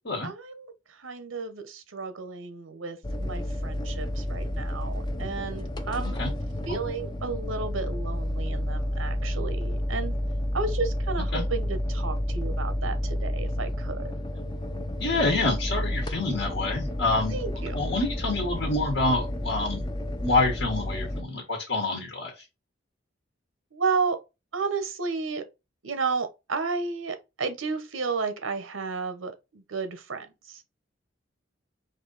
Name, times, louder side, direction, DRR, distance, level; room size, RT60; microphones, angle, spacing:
voice 1, 0.2-6.2 6.7-10.1 10.5-14.2 17.3-17.8 23.7-24.2 24.5-25.4 25.8-30.6, right 4 dB, 80° right, 0.8 m, -32 dB
sound 1, 3.0-21.2, left 1 dB, 20° left, 0.5 m, -30 dB
voice 2, 15.0-17.4 17.7-19.8 20.2-22.4, left 2 dB, 60° left, 1.3 m, -27 dB
4.5 x 2.7 x 3.9 m
head